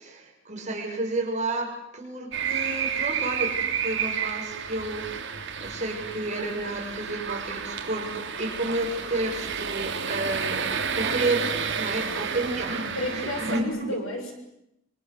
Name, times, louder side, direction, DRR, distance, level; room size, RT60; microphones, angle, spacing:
voice 1, 0.0-14.1, right 2 dB, 35° right, 0 dB, 7.1 m, -31 dB
sound 1, 2.3-13.6, right 7 dB, 60° right, 3.5 m, -31 dB
voice 2, 12.9-14.3, left 1 dB, 90° left, 3 dB, 7.3 m, -32 dB
26.0 x 26.0 x 8.1 m, 0.83 s
head